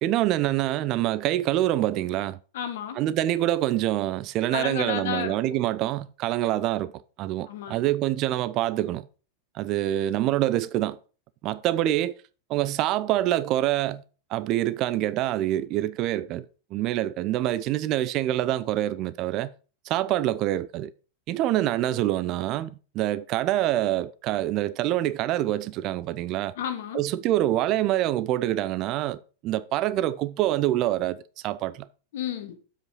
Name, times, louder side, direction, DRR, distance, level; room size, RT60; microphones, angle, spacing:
voice 1, 0.0-2.4 3.0-6.9 7.2-9.1 9.6-11.0 11.4-12.1 12.5-14.0 14.3-16.5 16.7-19.5 19.9-20.9 21.3-26.5 26.9-31.2 31.4-31.9, right 14 dB, 40° right, 0.4 m, -26 dB
voice 2, 2.5-3.0 4.5-5.4 7.5-7.8 26.6-27.0 32.1-32.6, left 9 dB, 55° left, 1.3 m, -32 dB
7.7 x 5.1 x 5.4 m
figure-of-eight pair, 90°, 0 cm